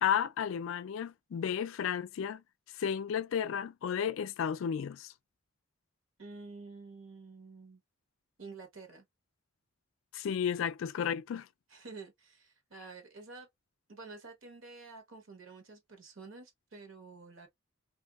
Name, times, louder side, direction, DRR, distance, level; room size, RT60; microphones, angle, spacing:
voice 1, 0.0-2.4 2.7-5.1 10.1-11.5, left 8 dB, 70° left, 0.3 m, -33 dB
voice 2, 6.2-7.8 8.4-9.0 11.7-13.5 13.9-17.5, right 3 dB, 75° right, 1.2 m, -49 dB
2.7 x 2.6 x 2.3 m
head